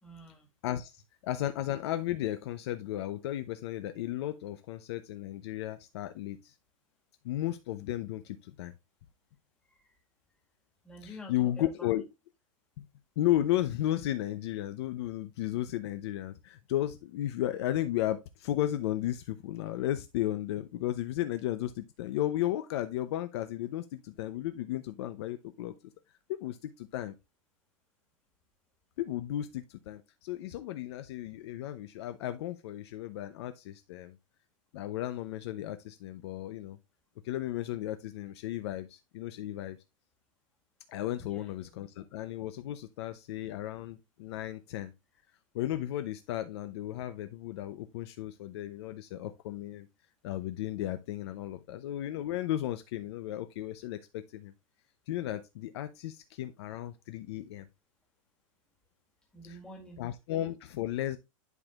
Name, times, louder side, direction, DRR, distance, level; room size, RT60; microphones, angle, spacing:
voice 1, 0.0-0.5 9.6-9.9 10.8-11.9 41.2-41.8 59.3-60.0, left 1 dB, 5° left, 1.7 m, -48 dB
voice 2, 0.6-6.5 7.2-8.7 11.0-12.1 13.2-25.7 26.3-27.1 29.0-34.2 34.7-36.8 37.2-39.8 40.9-44.9 45.5-49.9 50.2-54.5 55.1-57.7 59.4-59.6 60.0-61.2, left 13 dB, 50° left, 0.7 m, -34 dB
11.0 x 4.3 x 2.4 m
supercardioid pair, 155°, 17 cm